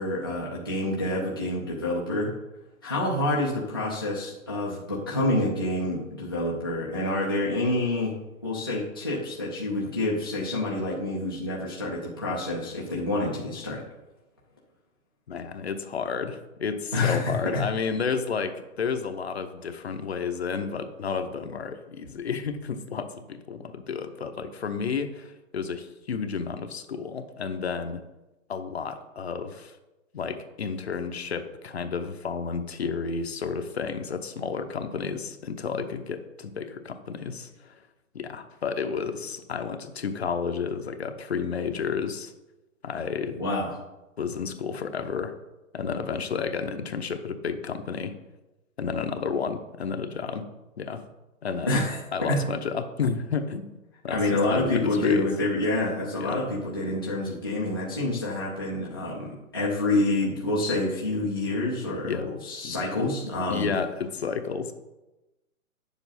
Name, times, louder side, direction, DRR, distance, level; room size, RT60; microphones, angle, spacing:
voice 1, 0.0-2.3 2.8-8.1 8.4-13.8 16.9-17.6 43.4-43.8 51.6-52.4 54.1-63.7, left 2 dB, 15° left, -6 dB, 0.5 m, -27 dB
voice 2, 15.3-28.0 28.5-29.8 30.1-37.8 38.1-42.3 42.8-43.4 44.2-45.4 45.7-48.1 48.8-50.4 50.8-51.0 51.4-51.8 52.1-53.7 54.0-55.3 56.2-56.4 62.0-62.3 62.6-62.7 63.5-64.7, left 5 dB, 50° left, 8 dB, 0.8 m, -31 dB
10.0 x 7.1 x 4.1 m, 1.0 s
hypercardioid pair, 175°, 41 cm